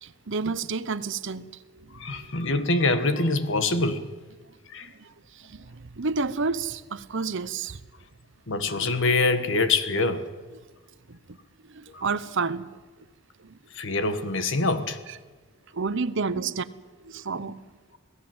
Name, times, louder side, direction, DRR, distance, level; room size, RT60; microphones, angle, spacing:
voice 1, 0.0-2.3 5.0-7.8 11.1-11.4 11.7-12.7 13.4-13.6 15.7-16.7 17.0-17.6, right 4 dB, 60° right, 0.8 m, -30 dB
voice 2, 1.9-4.0 4.7-4.9 8.5-10.3 11.9-12.0 13.7-15.0 16.3-16.4, left 3 dB, 60° left, 1.6 m, -25 dB
26.0 x 17.5 x 7.9 m
head